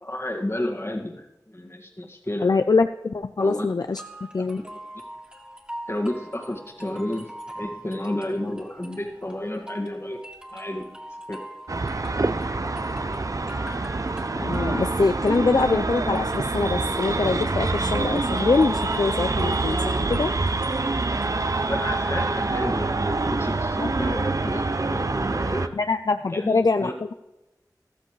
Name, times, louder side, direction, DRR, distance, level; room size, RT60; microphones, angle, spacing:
voice 1, 0.0-2.5 3.4-3.7 5.9-10.2 10.5-10.9 11.3-11.4 21.7-25.7 26.3-26.9, left 1 dB, 35° left, 1 dB, 1.8 m, -31 dB
voice 2, 2.4-4.6 14.4-20.3 23.8-23.9 25.7-26.9, left 4 dB, 65° left, 8 dB, 0.4 m, -24 dB
sound 1, 4.0-21.9, equal, 15° right, 2.1 m, -42 dB
sound 2, 11.7-25.7, right 3 dB, 50° right, 0.5 m, -26 dB
14.5 x 13.5 x 3.2 m, 0.98 s
wide cardioid pair, 55°, 7 cm